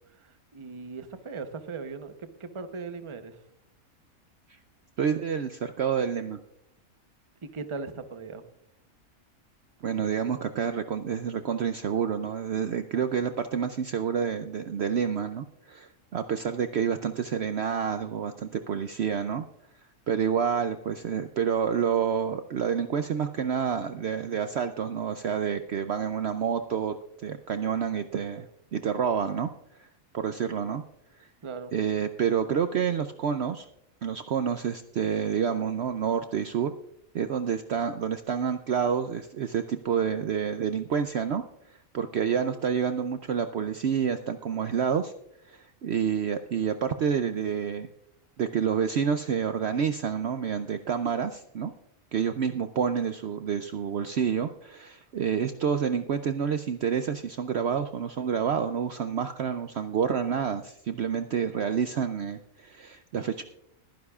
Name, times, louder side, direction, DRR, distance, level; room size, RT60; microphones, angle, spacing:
voice 1, 0.5-2.1 2.4-3.4 7.4-8.4 31.4-31.7, right 4 dB, 30° right, 9 dB, 0.7 m, -38 dB
voice 2, 5.0-6.4 9.8-19.4 20.1-27.0 27.2-28.5 28.7-29.5 29.8-29.9 30.1-30.8 31.2-31.3 31.7-33.7 34.0-36.7 37.1-45.1 45.5-47.9 48.4-51.7 52.1-63.4, right 7 dB, 60° right, 9 dB, 0.7 m, -28 dB
21.0 x 10.5 x 2.4 m, 0.74 s
omnidirectional pair, 1.5 m